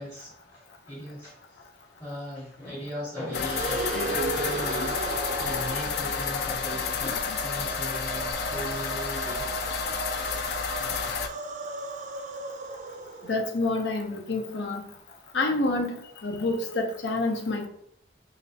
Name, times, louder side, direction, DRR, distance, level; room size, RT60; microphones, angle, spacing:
voice 1, 0.0-1.6 2.0-5.0 5.4-9.5 15.6-16.0, equal, 20° left, 0.8 m, -39 dB
sound 1, 3.3-11.3, left 7 dB, 60° left, 0.3 m, -31 dB
sound 2, 3.3-13.5, right 4 dB, 45° right, 0.3 m, -35 dB
voice 2, 13.3-14.8 15.3-17.7, left 2 dB, 90° left, 0.7 m, -28 dB
3.2 x 3.0 x 2.7 m
head